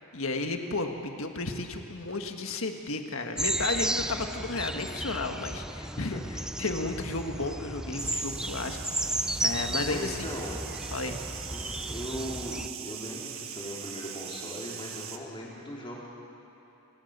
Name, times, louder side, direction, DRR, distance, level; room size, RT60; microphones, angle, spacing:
voice 1, 0.0-10.3 10.9-11.2, left 3 dB, 70° left, 5 dB, 1.6 m, -33 dB
sound 1, 3.4-12.7, right 1 dB, 5° right, 0.5 m, -34 dB
sound 2, 8.0-15.2, right 9 dB, 70° right, 1.4 m, -41 dB
voice 2, 9.8-10.6 11.5-16.0, equal, 25° left, -4 dB, 4.3 m, -39 dB
28.0 x 19.0 x 6.8 m, 2.9 s
head